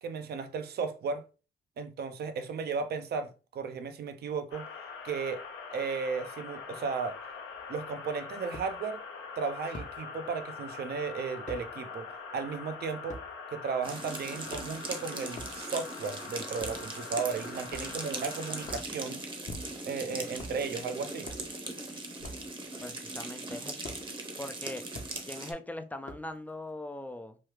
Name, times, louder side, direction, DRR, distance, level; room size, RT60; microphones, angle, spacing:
voice 1, 0.0-1.2 1.8-4.7 5.0-5.4 5.7-7.2 7.7-9.1 9.4-13.2 13.5-19.2 19.9-21.3, right 5 dB, 55° right, 0.6 m, -35 dB
sound 1, 4.5-18.8, left 5 dB, 75° left, 0.7 m, -44 dB
sound 2, 7.5-7.6 8.5-8.7 9.7-9.9 11.5-11.6 13.1-13.3 14.3-14.9 15.3-15.6 16.6-16.8 17.7-18.1 18.6-18.9 19.5-19.9 20.3-20.6 21.2-21.5 22.2-22.5 23.8-24.0 24.9-25.1 26.1-26.4, left 1 dB, 40° left, 0.7 m, -43 dB
sound 3, 13.8-25.5, right 2 dB, 25° right, 0.8 m, -40 dB
voice 2, 22.8-24.0 24.4-24.8 25.2-27.4, left 1 dB, 10° left, 0.4 m, -41 dB
3.1 x 2.3 x 3.2 m
cardioid pair, 90°, 20 cm